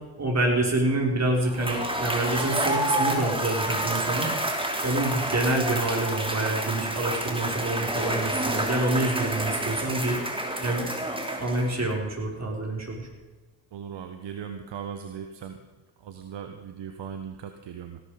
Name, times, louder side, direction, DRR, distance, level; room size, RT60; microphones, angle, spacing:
voice 1, 0.2-4.3 4.8-10.2 10.6-10.9 11.4-13.0, right 2 dB, 30° right, 0 dB, 5.4 m, -27 dB
Cheering / Applause / Crowd, 1.4-11.9, right 1 dB, 10° right, 3.1 m, -29 dB
voice 2, 13.7-15.6 16.0-18.0, right 7 dB, 60° right, 7 dB, 1.3 m, -38 dB
17.0 x 12.0 x 5.3 m, 1.2 s
supercardioid pair, 55°, 49 cm